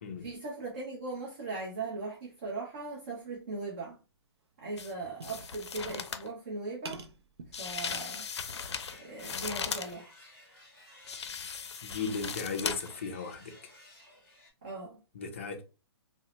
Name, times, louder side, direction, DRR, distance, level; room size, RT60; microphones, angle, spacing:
voice 1, 0.2-4.0 4.6-7.1 7.6-8.2 9.0-10.1 14.6-15.0, right 3 dB, 30° right, 0.7 m, -39 dB
sound 1, 3.4-3.6 4.0-4.1 4.4-6.4 6.8-8.1 8.5-9.8, right 4 dB, 75° right, 0.5 m, -50 dB
sound 2, 4.8-4.9 5.2-6.3 7.5-9.9 11.1-13.0 13.3-13.4, left 6 dB, 90° left, 0.5 m, -38 dB
sound 3, 7.6-14.5, left 1 dB, 5° left, 0.9 m, -56 dB
voice 2, 11.8-13.6 15.1-15.6, left 4 dB, 30° left, 0.4 m, -36 dB
2.7 x 2.0 x 2.9 m
hypercardioid pair, 180°, 14 cm